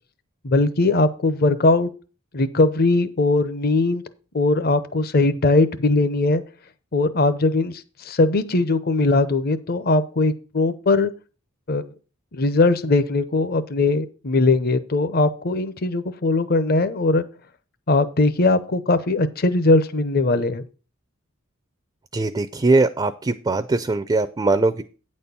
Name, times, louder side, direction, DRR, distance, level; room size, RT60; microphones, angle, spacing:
voice 1, 0.4-1.9 2.3-4.0 4.3-6.4 6.9-7.8 8.1-11.1 11.7-11.8 12.3-17.2 17.9-20.6, left 2 dB, 50° left, 13 dB, 0.7 m, -20 dB
voice 2, 22.1-24.8, right 3 dB, 20° right, 10 dB, 0.4 m, -21 dB
9.2 x 4.3 x 6.8 m, 0.35 s
head